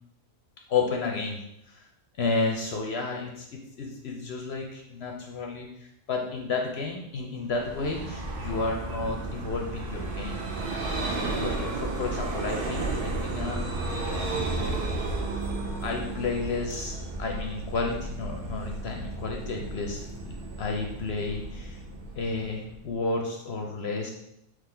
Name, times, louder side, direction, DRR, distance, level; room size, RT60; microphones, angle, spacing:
voice 1, 0.7-1.4 1.7-1.9 2.2-10.4 11.0-13.8 15.8-21.8 22.1-24.1, left 3 dB, 60° left, 1 dB, 0.8 m, -32 dB
Vehicle, 7.5-23.0, right 2 dB, 50° right, 0.8 m, -33 dB
3.8 x 3.1 x 4.3 m, 0.80 s
omnidirectional pair, 1.4 m